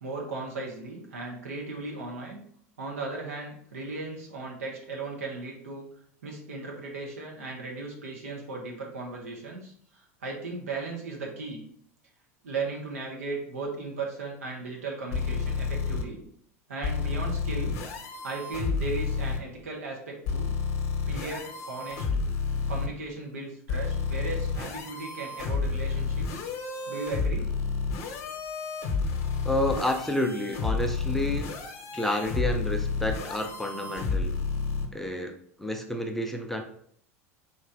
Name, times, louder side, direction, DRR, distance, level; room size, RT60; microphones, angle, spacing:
voice 1, 0.0-2.4 2.8-5.9 6.2-9.7 10.2-11.6 12.4-16.2 16.7-17.7 18.2-20.5 21.1-22.0 22.7-26.4 26.9-27.5, right 3 dB, 70° right, -1 dB, 1.1 m, -36 dB
sound 1, 15.1-16.0 16.8-19.4 20.3-22.9 23.7-34.9, left 4 dB, 50° left, 0.8 m, -30 dB
voice 2, 29.4-31.5 31.9-34.3 34.9-36.6, left 1 dB, 5° left, 3 dB, 0.5 m, -30 dB
4.1 x 3.1 x 3.7 m, 0.64 s
figure-of-eight pair, 75°, 8 cm